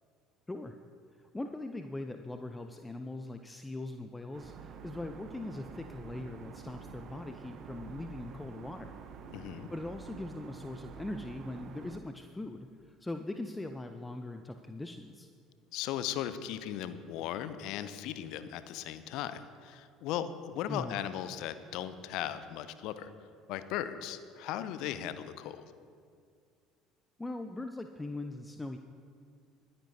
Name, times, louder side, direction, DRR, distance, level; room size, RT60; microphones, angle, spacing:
voice 1, 1.2-9.0 9.7-15.3 20.7-21.0 27.2-28.8, left 2 dB, 10° left, 7 dB, 0.5 m, -41 dB
sound 1, 4.3-12.0, right 6 dB, 45° right, 0.9 m, -48 dB
voice 2, 9.3-9.7 15.7-23.1 23.5-25.6, left 11 dB, 55° left, 13 dB, 0.6 m, -37 dB
22.0 x 9.8 x 2.8 m, 2.2 s
figure-of-eight pair, 60°, 0 cm